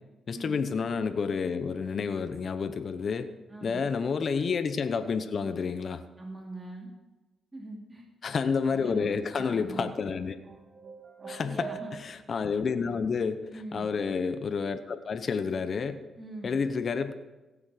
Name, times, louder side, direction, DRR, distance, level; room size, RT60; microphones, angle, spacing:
voice 1, 0.3-3.3 3.6-6.0 8.2-10.3 11.3-13.4 13.7-16.0 16.4-17.1, left 5 dB, 55° left, 9 dB, 0.8 m, -30 dB
voice 2, 3.5-3.8 6.2-6.9 7.5-8.1 8.6-9.9 11.4-11.9 13.5-13.9 16.2-16.5, right 1 dB, 25° right, -1 dB, 2.7 m, -42 dB
sound 1, 10.4-12.5, right 6 dB, 50° right, 1.2 m, -43 dB
16.5 x 7.0 x 5.0 m, 1.1 s
cardioid pair, 65°, 0 cm